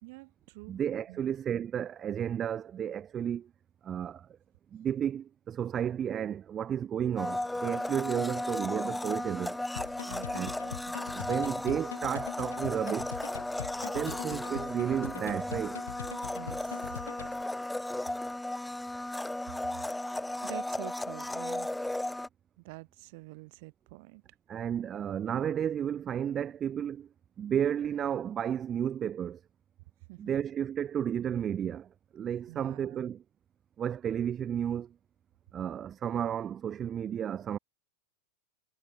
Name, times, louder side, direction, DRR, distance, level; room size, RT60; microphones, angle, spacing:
voice 1, 0.0-0.8 1.1-1.3 10.1-10.5 10.9-11.0 14.1-14.2 16.3-17.0 20.4-21.7 22.6-24.2 30.1-30.4 32.5-33.0, right 26 dB, 50° right, 3.7 m, -47 dB
voice 2, 0.7-3.5 3.8-4.2 4.7-9.6 10.3-10.5 11.1-13.1 13.8-15.8 24.5-27.1 27.4-29.4 30.2-31.9 32.1-33.2 33.8-34.9 35.5-37.6, right 9 dB, 25° right, 0.5 m, -32 dB
Domestic sounds home sounds, 7.2-22.3, left 1 dB, 5° left, 1.3 m, -35 dB
sound 1, 9.8-17.4, left 9 dB, 65° left, 3.0 m, -42 dB
figure-of-eight pair, 90°, 0 cm